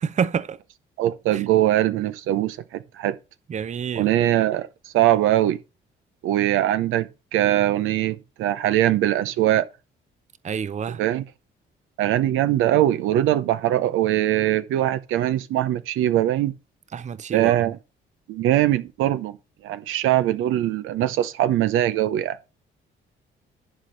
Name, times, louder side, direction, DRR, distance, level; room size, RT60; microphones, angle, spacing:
voice 1, 0.0-0.6 1.3-1.4 3.5-4.1 10.4-11.0 16.9-17.5, right 7 dB, 35° right, 0.6 m, -27 dB
voice 2, 1.0-3.2 4.0-5.6 6.2-9.7 10.9-11.2 12.0-16.5 17.3-17.8 18.3-19.4 19.6-22.4, right 13 dB, 90° right, 0.7 m, -22 dB
11.0 x 4.4 x 6.4 m
cardioid pair, 90°, 20 cm